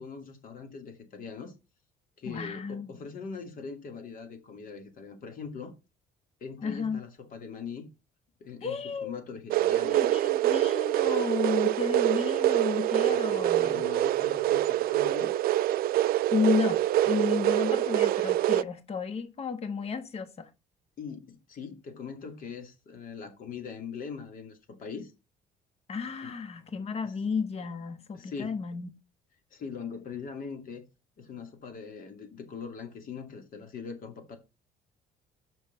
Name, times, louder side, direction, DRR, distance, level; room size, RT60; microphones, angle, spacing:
voice 1, 0.0-1.5 2.2-5.7 6.4-7.9 8.4-10.0 13.3-15.3 21.0-25.1 26.2-26.3 27.0-27.2 28.1-28.6 29.5-30.8 31.2-34.4, left 5 dB, 55° left, 2.5 m, -41 dB
voice 2, 2.3-2.9 6.6-7.0 8.6-9.2 9.8-13.8 16.3-20.5 25.9-28.9, left 5 dB, 35° left, 1.4 m, -32 dB
sound 1, 9.5-18.6, right 14 dB, 60° right, 0.4 m, -25 dB
6.2 x 5.9 x 5.6 m
cardioid pair, 110°, 17 cm